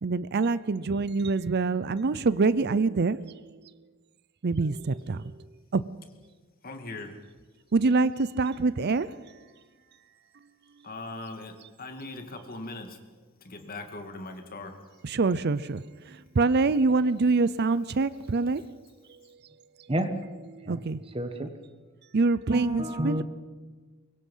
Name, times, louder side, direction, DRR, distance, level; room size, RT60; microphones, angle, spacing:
voice 1, 0.0-3.4 4.4-5.3 5.7-5.8 7.7-9.2 15.0-18.8 20.5-21.0 22.1-23.2, right 3 dB, 50° right, 0.5 m, -25 dB
voice 2, 6.6-7.2 10.8-13.0 13.4-14.8, left 2 dB, 45° left, 2.4 m, -40 dB
voice 3, 21.1-21.5 22.5-23.2, right 1 dB, 25° right, 1.4 m, -29 dB
24.0 x 22.0 x 5.6 m
head